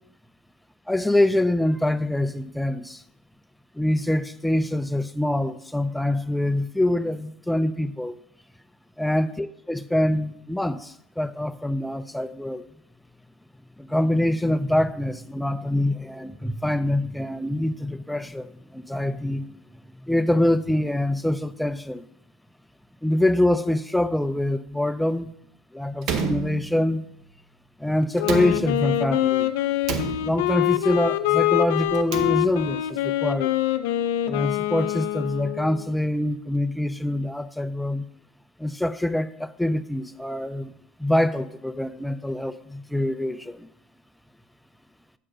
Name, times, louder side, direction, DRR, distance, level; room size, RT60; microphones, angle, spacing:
voice 1, 0.9-3.0 3.7-8.2 9.0-12.6 13.8-19.5 20.0-22.0 23.0-25.3 25.7-27.0 27.8-29.5 30.2-33.6 34.3-38.1 38.6-40.7 41.0-43.7, left 1 dB, 5° left, 0.4 m, -25 dB
Slam, 26.0-27.2 28.2-29.1 29.8-30.7 31.9-32.8, right 5 dB, 55° right, 0.8 m, -31 dB
Wind instrument woodwind instrument, 28.2-35.9, left 14 dB, 80° left, 0.4 m, -25 dB
7.4 x 4.5 x 5.0 m
supercardioid pair, 95°, 0 cm